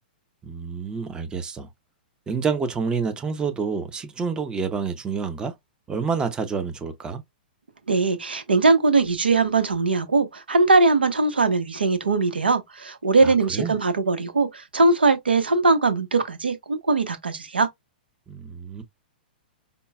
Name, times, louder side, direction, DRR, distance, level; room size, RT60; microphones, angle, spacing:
voice 1, 0.4-1.7 2.3-5.5 5.9-7.2 13.2-13.7 18.3-18.8, right 5 dB, 15° right, 0.6 m, -28 dB
voice 2, 7.9-17.7, right 3 dB, 90° right, 1.0 m, -20 dB
5.3 x 2.2 x 2.3 m
hypercardioid pair, 115°, 5 cm